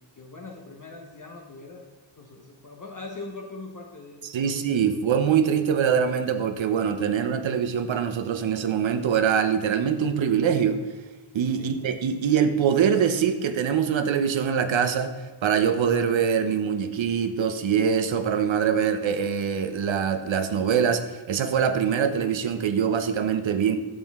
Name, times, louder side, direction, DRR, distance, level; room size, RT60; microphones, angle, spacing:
voice 1, 0.1-1.8 2.2-4.5 11.6-11.8, left 3 dB, 40° left, 0 dB, 1.0 m, -41 dB
voice 2, 4.2-10.8 11.3-23.8, right 7 dB, 65° right, 8 dB, 0.8 m, -24 dB
8.7 x 6.2 x 3.5 m, 1.2 s
cardioid pair, 70°, 49 cm